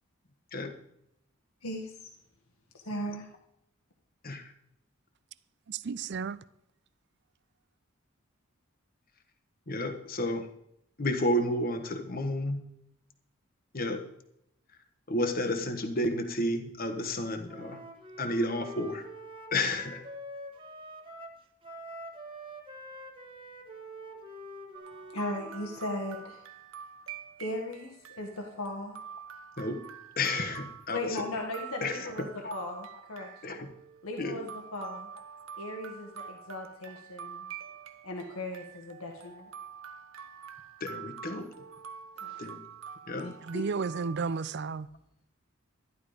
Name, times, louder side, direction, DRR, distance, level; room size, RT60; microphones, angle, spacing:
voice 1, 1.6-2.1 2.7-3.3 25.1-26.4 27.4-29.0 30.9-33.6 34.0-35.1 35.6-37.5 38.0-39.5 42.2-42.4 43.5-43.6, left 1 dB, 80° left, 1.7 m, -37 dB
voice 2, 5.7-6.4 43.4-44.9, right 5 dB, 50° right, 0.5 m, -33 dB
voice 3, 9.7-10.5 11.0-12.6 13.7-14.0 15.1-17.8 18.2-19.0 19.5-20.0 29.6-29.8 30.2-31.2 31.8-32.5 33.4-33.7 34.2-34.4 40.8-41.5 42.4-42.6 43.1-43.3, left 1 dB, 40° left, 1.4 m, -31 dB
Wind instrument woodwind instrument, 17.5-25.9, equal, 25° right, 1.4 m, -45 dB
sound 1, 24.7-44.5, right 8 dB, 70° right, 1.0 m, -46 dB
12.5 x 11.5 x 5.0 m
head